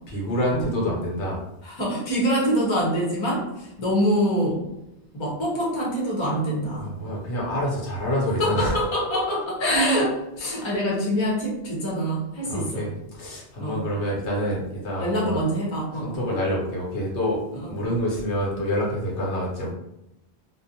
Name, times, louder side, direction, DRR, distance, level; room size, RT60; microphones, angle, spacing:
voice 1, 0.1-1.4 6.8-8.8 12.4-15.4 15.9-17.4 17.7-19.7, equal, 85° left, -3 dB, 1.1 m, -27 dB
voice 2, 1.6-4.7 5.1-6.9 8.4-12.9 13.6-13.8 15.0-16.2 17.6-17.8, equal, 30° left, -4 dB, 0.7 m, -25 dB
2.4 x 2.0 x 2.7 m, 0.90 s
omnidirectional pair, 1.1 m